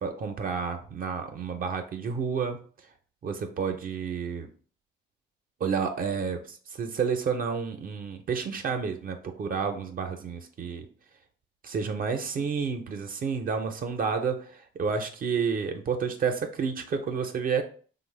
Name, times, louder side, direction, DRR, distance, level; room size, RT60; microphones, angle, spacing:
voice 1, 0.0-2.6 3.2-4.5 5.6-10.9 11.6-17.6, right 6 dB, 45° right, 5 dB, 0.4 m, -30 dB
3.2 x 2.0 x 3.0 m, 0.43 s
cardioid pair, 90°, 20 cm